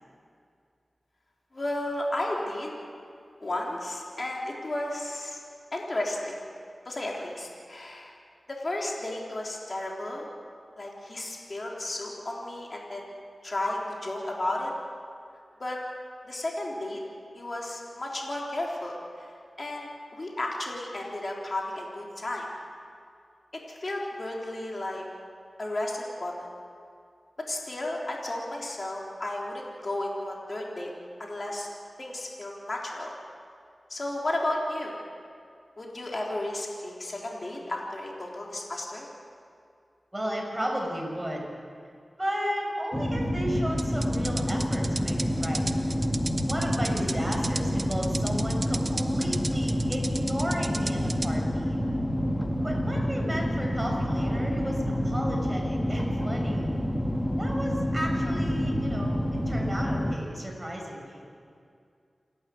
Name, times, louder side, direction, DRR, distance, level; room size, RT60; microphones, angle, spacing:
voice 1, 1.5-2.8 3.4-5.4 5.7-6.5 6.9-8.2 8.5-10.3 10.8-13.1 13.4-14.7 15.6-15.8 16.2-17.0 17.3-22.5 23.7-25.0 25.6-26.3 27.5-30.9 31.2-31.7 32.0-33.1 33.9-35.0 35.8-39.1, left 1 dB, 50° left, -2 dB, 3.8 m, -33 dB
voice 2, 40.1-41.5 42.1-45.6 46.5-51.8 52.6-56.7 57.4-59.2 59.5-61.2, equal, 15° right, 0 dB, 6.0 m, -34 dB
sound 1, 42.9-60.2, equal, 10° left, 2.1 m, -28 dB
sound 2, 43.8-51.3, right 3 dB, 50° right, 1.0 m, -36 dB
28.5 x 12.0 x 8.0 m, 2.3 s
cardioid pair, 50°, 0 cm